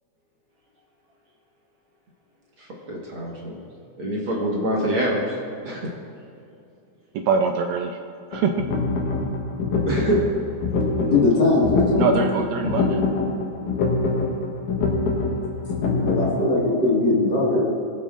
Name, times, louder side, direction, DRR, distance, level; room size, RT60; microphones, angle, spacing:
voice 1, 2.6-3.6 4.0-5.3 5.6-5.8 9.9-10.2, right 1 dB, 50° right, -4 dB, 1.9 m, -25 dB
voice 2, 7.1-8.0 8.3-8.5 12.0-13.0, right 5 dB, 80° right, 4 dB, 1.8 m, -23 dB
sound 1, 8.3-16.4, left 3 dB, 85° left, 2.6 m, -24 dB
voice 3, 11.0-12.1 16.1-17.6, left 2 dB, 40° left, -6 dB, 2.1 m, -20 dB
22.0 x 7.5 x 2.5 m, 2.6 s
omnidirectional pair, 3.5 m